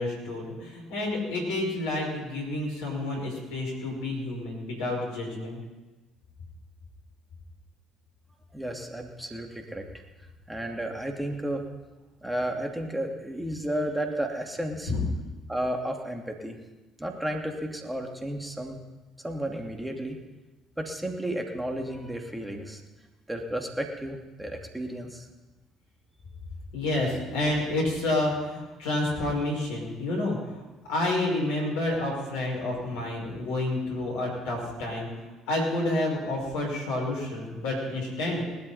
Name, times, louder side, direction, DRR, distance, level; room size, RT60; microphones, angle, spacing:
voice 1, 0.0-5.6 14.9-15.0 26.7-30.6 30.9-35.1 35.5-38.5, left 2 dB, 65° left, -1 dB, 5.8 m, -29 dB
voice 2, 8.5-10.0 10.5-11.6 12.2-14.9 15.5-16.6 17.0-18.8 19.2-20.2 20.8-22.8 23.3-25.3, right 1 dB, 10° right, 2 dB, 2.7 m, -32 dB
19.5 x 12.5 x 4.3 m, 1.2 s
figure-of-eight pair, 50°, 0 cm